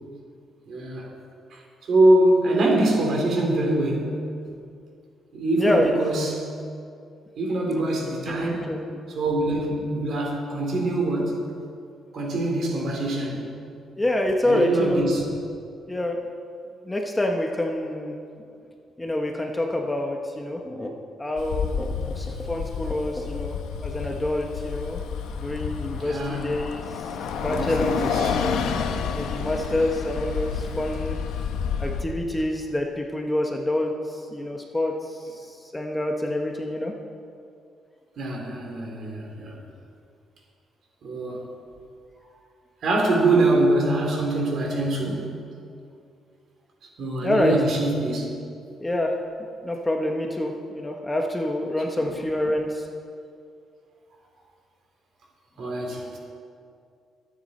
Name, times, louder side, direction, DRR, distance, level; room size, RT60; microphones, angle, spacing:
voice 1, 0.7-1.1 1.5-1.6 1.9-4.1 5.3-6.5 7.4-8.7 9.1-11.5 12.1-13.5 14.4-15.3 26.0-26.4 27.5-28.4 38.2-39.5 41.0-41.4 42.8-45.4 47.0-48.3 51.9-52.1 55.6-56.2, right 2 dB, 50° right, 0 dB, 3.1 m, -24 dB
voice 2, 5.6-5.9 8.3-8.8 14.0-15.0 15.9-16.2 16.8-18.2 19.0-20.9 21.2-25.0 25.3-27.0 27.3-28.6 29.1-31.2 31.8-36.9 47.2-47.6 48.8-49.2 49.6-52.9, left 1 dB, 10° left, 2 dB, 0.9 m, -27 dB
Bus, 21.4-32.0, left 6 dB, 90° left, 1.0 m, -30 dB
23.5 x 9.2 x 4.2 m, 2.4 s
cardioid pair, 160°, 0 cm